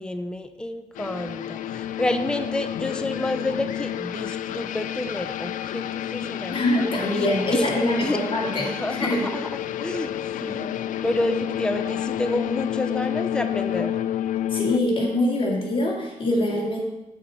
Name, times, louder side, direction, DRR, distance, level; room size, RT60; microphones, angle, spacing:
voice 1, 0.0-7.7 8.0-8.2 8.6-9.5 9.8-10.1 10.4-10.7 11.0-14.0, left 1 dB, 5° left, 8 dB, 0.6 m, -29 dB
sound 1, 0.9-14.8, left 11 dB, 80° left, 0.4 m, -30 dB
voice 2, 6.5-9.3 14.5-16.8, left 1 dB, 40° left, -2 dB, 2.2 m, -24 dB
8.1 x 4.4 x 6.9 m, 1.0 s
cardioid pair, 105°, 13 cm